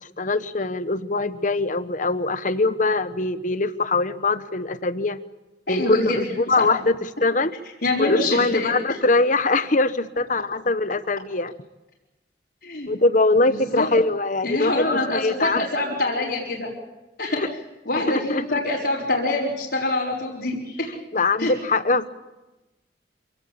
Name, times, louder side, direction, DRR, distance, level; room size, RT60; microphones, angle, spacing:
voice 1, 0.0-5.2 5.7-7.5 8.0-11.5 12.9-15.6 17.4-17.5 18.1-18.4 21.1-22.1, left 3 dB, 45° left, 13 dB, 1.0 m, -22 dB
voice 2, 5.7-6.7 7.8-9.0 12.6-12.9 13.5-13.9 14.4-16.7 17.2-17.4 17.9-20.9 21.4-21.5, left 2 dB, 60° left, -5 dB, 4.6 m, -25 dB
27.0 x 17.5 x 8.5 m, 1.0 s
head